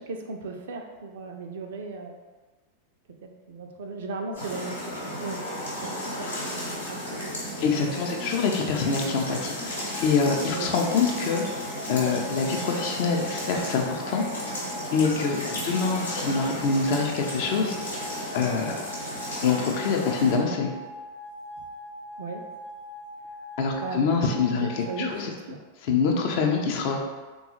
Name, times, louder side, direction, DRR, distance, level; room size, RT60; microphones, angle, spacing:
voice 1, 0.0-2.1 3.2-5.4 5.8-7.6 7.8-8.3 9.0-9.1 10.5-10.7 15.6-15.8 22.1-22.4 23.8-24.0 24.5-25.6, right 3 dB, 60° right, 3 dB, 0.4 m, -37 dB
sound 1, 4.3-20.4, equal, 75° left, 1.0 m, -34 dB
voice 2, 7.6-11.4 11.9-14.2 14.9-17.8 18.3-18.8 19.4-20.7 23.6-25.3 25.8-27.0, left 5 dB, 45° left, 1 dB, 0.5 m, -25 dB
sound 2, 9.9-25.1, equal, 25° left, 0.8 m, -41 dB
3.6 x 2.3 x 2.9 m, 1.3 s
figure-of-eight pair, 90°, 0 cm